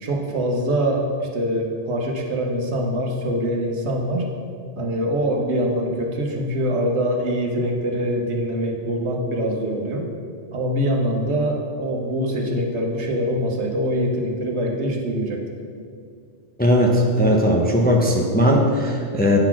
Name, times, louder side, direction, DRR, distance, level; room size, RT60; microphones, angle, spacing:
voice 1, 0.0-4.3 4.7-10.1 10.5-15.5, equal, 75° right, 2 dB, 1.2 m, -24 dB
voice 2, 16.6-19.4, equal, 10° left, -1 dB, 0.6 m, -18 dB
8.9 x 4.0 x 5.9 m, 2.2 s
omnidirectional pair, 1.1 m